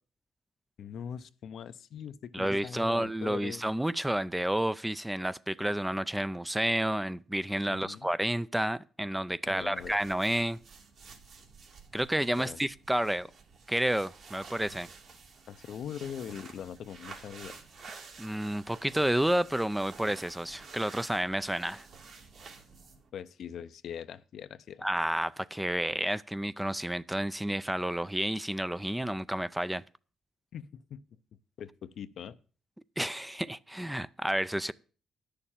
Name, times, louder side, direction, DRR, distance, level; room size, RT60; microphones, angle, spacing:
voice 1, 0.8-3.6 7.7-8.1 9.5-10.0 12.4-12.6 15.5-17.6 23.1-24.9 30.5-31.0 31.6-32.4, left 8 dB, 65° left, 0.6 m, -42 dB
voice 2, 2.3-10.6 11.9-13.3 13.7-14.9 18.2-21.9 24.8-29.8 33.0-34.7, right 1 dB, 5° right, 0.4 m, -30 dB
sound 1, 9.5-23.1, right 4 dB, 60° right, 2.6 m, -51 dB
10.0 x 6.7 x 7.2 m
cardioid pair, 90°, 0 cm